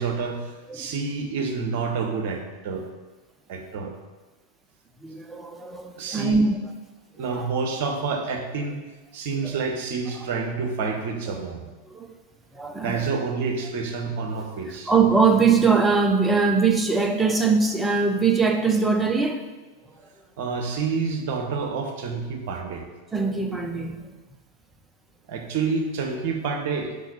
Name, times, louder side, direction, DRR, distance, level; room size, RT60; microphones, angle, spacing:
voice 1, 0.0-2.9 3.5-3.9 6.0-6.4 7.2-8.8 9.1-11.6 12.8-14.9 20.4-22.9 25.3-27.0, right 4 dB, 50° right, 4 dB, 1.0 m, -28 dB
voice 2, 5.0-6.6 7.2-7.5 11.3-11.4 11.9-12.1 12.5-13.0 14.9-19.4 23.1-24.1, right 4 dB, 10° right, 4 dB, 0.7 m, -22 dB
6.3 x 5.1 x 4.1 m, 1.2 s
figure-of-eight pair, 90°, 0 cm